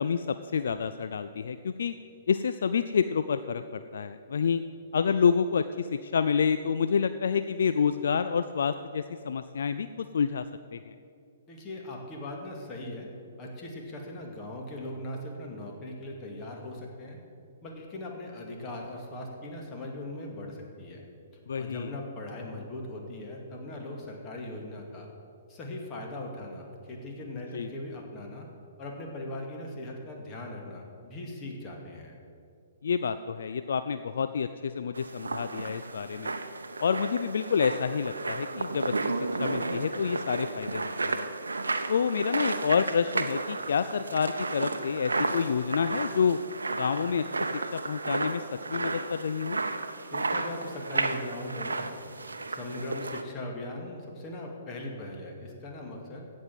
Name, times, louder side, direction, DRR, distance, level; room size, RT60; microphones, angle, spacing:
voice 1, 0.0-1.9 2.3-4.6 4.9-10.4 10.7-10.9 21.5-21.9 27.3-27.7 32.8-36.3 36.8-38.9 39.4-41.2 41.9-46.4 46.8-48.4 48.7-49.6, left 6 dB, 60° left, 11 dB, 0.4 m, -28 dB
voice 2, 11.5-13.1 13.4-17.2 17.6-21.1 21.6-25.1 25.5-28.5 28.8-32.1 50.1-51.9 52.5-56.3, left 1 dB, 25° left, 0 dB, 2.2 m, -39 dB
sound 1, 34.9-53.2, right 3 dB, 75° right, 0.7 m, -33 dB
16.0 x 5.3 x 7.6 m, 2.4 s
figure-of-eight pair, 120°, 0 cm